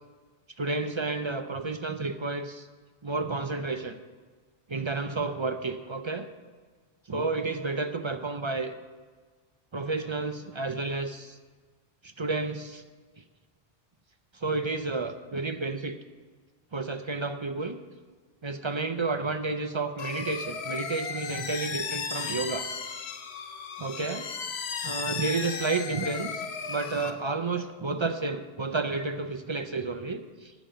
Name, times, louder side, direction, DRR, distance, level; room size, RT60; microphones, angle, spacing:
voice 1, 0.6-2.7 3.0-4.0 4.7-6.3 7.1-8.7 9.7-11.4 12.0-12.8 14.3-16.0 16.7-17.8 18.4-22.7 23.8-24.3 24.8-30.5, right 3 dB, 40° right, 9 dB, 0.4 m, -31 dB
sound 1, 20.0-27.1, left 6 dB, 85° left, 1.1 m, -35 dB
9.1 x 7.1 x 8.7 m, 1.5 s
omnidirectional pair, 1.1 m